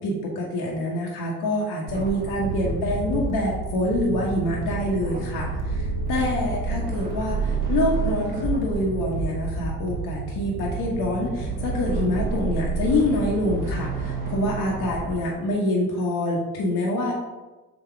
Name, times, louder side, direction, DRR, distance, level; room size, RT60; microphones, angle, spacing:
voice 1, 0.0-17.1, left 1 dB, 50° left, -3 dB, 1.1 m, -26 dB
sound 1, 1.9-15.1, right 3 dB, 20° right, 0.8 m, -31 dB
sound 2, 2.4-14.4, right 4 dB, 55° right, 1.4 m, -34 dB
3.9 x 2.8 x 4.5 m, 1.2 s
hypercardioid pair, 70°, 48 cm